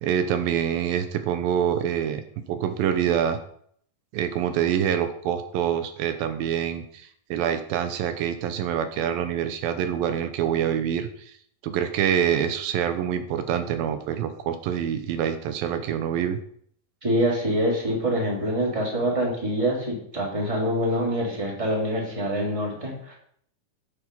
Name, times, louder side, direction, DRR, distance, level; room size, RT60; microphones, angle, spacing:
voice 1, 0.0-2.2 2.5-3.4 4.1-11.3 11.6-16.4, right 9 dB, 85° right, 9 dB, 2.7 m, -26 dB
voice 2, 17.0-23.1, equal, 10° right, -3 dB, 2.8 m, -25 dB
10.5 x 7.9 x 5.5 m, 0.63 s
omnidirectional pair, 4.1 m